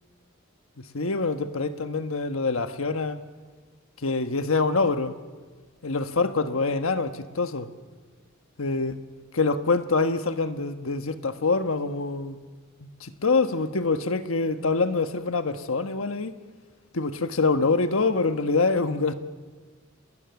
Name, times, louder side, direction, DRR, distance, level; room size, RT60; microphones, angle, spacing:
voice 1, 0.8-3.2 4.0-5.2 5.8-7.7 8.6-8.9 9.3-12.4 12.8-16.3 16.9-19.1, left 3 dB, 75° left, 1.3 m, -25 dB
30.0 x 20.0 x 7.1 m
head